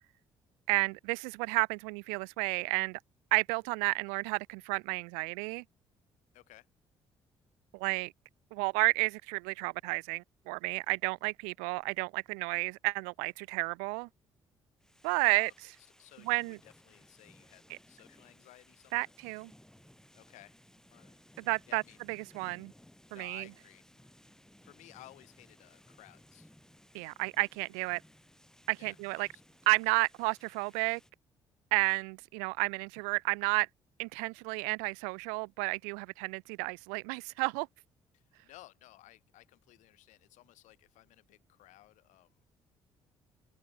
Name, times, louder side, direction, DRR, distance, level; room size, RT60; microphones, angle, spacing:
voice 1, 0.7-3.0 3.3-5.6 7.7-8.1 8.5-14.1 15.0-15.5 16.3-16.6 18.9-19.5 21.4-21.8 22.1-22.7 23.1-23.5 26.9-28.0 28.7-29.3 29.7-31.0 31.7-33.7 34.0-37.7, right 40 dB or more, 65° right, 0.5 m, -31 dB
voice 2, 6.3-6.7 15.2-15.5 16.0-19.1 20.1-20.5 20.9-21.2 21.7-22.0 23.1-24.1 24.6-26.5 28.8-29.4 38.1-42.4, left 16 dB, 60° left, 6.8 m, -57 dB
sound 1, 14.8-31.1, left 1 dB, 5° left, 7.0 m, -61 dB
open air
figure-of-eight pair, 45°, 14 cm